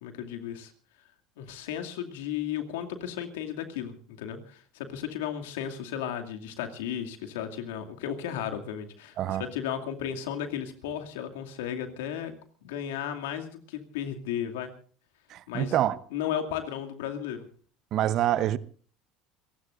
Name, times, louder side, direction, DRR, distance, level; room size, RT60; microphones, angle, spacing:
voice 1, 0.0-0.7 1.4-12.3 12.6-14.7 15.5-15.7 16.1-17.5, left 9 dB, 80° left, 2.4 m, -34 dB
voice 2, 15.3-16.0 17.9-18.6, right 12 dB, 55° right, 0.9 m, -26 dB
28.5 x 16.0 x 2.6 m
hypercardioid pair, 85°, 0 cm